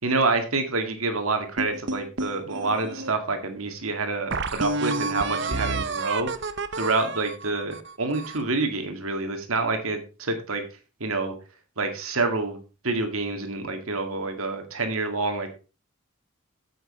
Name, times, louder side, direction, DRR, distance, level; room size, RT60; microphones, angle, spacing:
voice 1, 0.0-6.3 6.8-10.6 11.0-11.3 11.8-12.6 12.8-15.5, right 3 dB, 85° right, 6 dB, 2.1 m, -27 dB
sound 1, 1.6-3.1 3.7-3.8 4.3-8.5, right 3 dB, 55° right, 0.7 m, -30 dB
9.1 x 7.8 x 4.4 m, 0.33 s
head